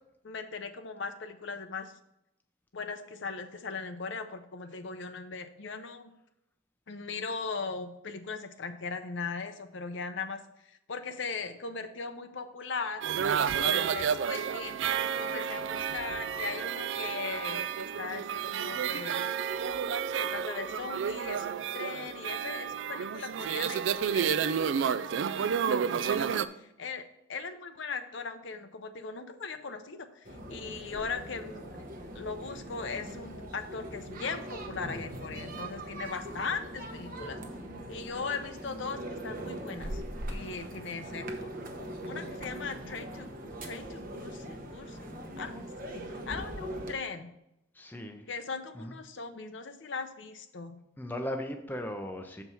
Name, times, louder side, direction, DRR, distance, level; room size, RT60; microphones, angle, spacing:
voice 1, 0.2-1.9 2.7-6.1 6.9-13.0 13.6-14.8 15.2-19.2 20.2-27.0 27.3-31.8 32.1-37.4 37.9-40.0 40.3-41.5 42.0-43.3 43.6-45.1 45.4-45.5 45.8-47.3 48.3-50.8, left 4 dB, 65° left, 8 dB, 0.7 m, -39 dB
sound 1, 13.0-26.5, right 7 dB, 65° right, 0.3 m, -31 dB
sound 2, 30.2-46.9, right 1 dB, 45° right, 0.9 m, -41 dB
voice 2, 47.7-48.3 48.7-49.0 51.0-52.4, left 1 dB, 10° left, 4 dB, 0.5 m, -37 dB
6.8 x 4.6 x 5.5 m, 0.82 s
head